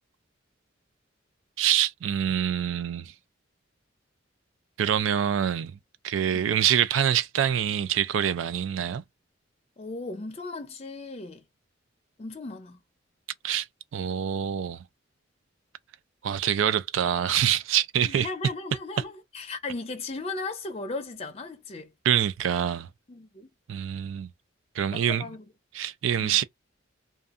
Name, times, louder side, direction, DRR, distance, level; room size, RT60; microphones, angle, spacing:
voice 1, 1.6-3.1 4.8-5.7 6.0-9.0 13.4-13.7 13.9-14.8 16.2-18.3 22.1-22.9 23.7-24.3 24.8-25.3 25.7-26.4, right 9 dB, 80° right, 0.4 m, -25 dB
voice 2, 9.8-11.4 12.2-12.8 18.0-21.9 23.1-23.5 24.9-25.4 26.2-26.4, left 3 dB, 30° left, 0.5 m, -36 dB
2.6 x 2.2 x 2.4 m
head